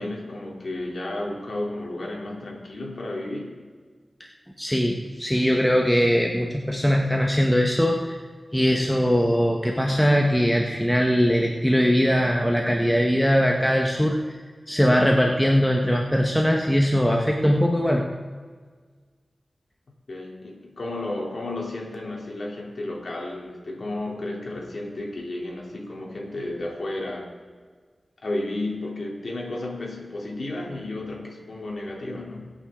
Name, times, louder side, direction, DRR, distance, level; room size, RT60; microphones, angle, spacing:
voice 1, 0.0-3.6 20.1-27.3 28.2-32.5, left 2 dB, 70° left, -1 dB, 3.3 m, -32 dB
voice 2, 4.6-8.2 8.5-14.2 14.7-18.0, equal, 5° left, 1 dB, 1.3 m, -21 dB
23.5 x 8.9 x 3.8 m, 1.5 s
wide cardioid pair, 75°, 0 cm